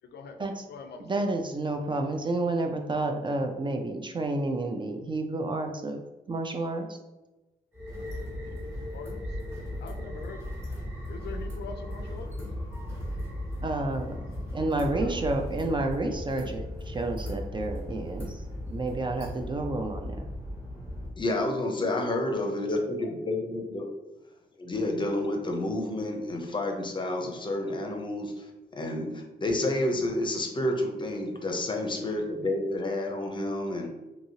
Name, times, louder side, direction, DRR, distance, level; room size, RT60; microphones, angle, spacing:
voice 1, 0.0-0.4 0.7-1.2 8.4-9.1 9.8-10.5 11.1-12.3 14.7-15.3 31.9-32.3, left 5 dB, 75° left, 5 dB, 0.4 m, -43 dB
voice 2, 1.0-6.0 6.3-6.9 13.6-14.2 14.5-18.4 18.7-20.2, right 2 dB, 30° right, 4 dB, 0.3 m, -30 dB
sound 1, 7.7-21.1, left 1 dB, 15° right, 1.3 m, -36 dB
voice 3, 21.2-23.9 24.6-28.4 28.7-33.9, left 1 dB, 25° left, 3 dB, 0.6 m, -30 dB
2.9 x 2.7 x 2.7 m, 1.0 s
cardioid pair, 100°, 17 cm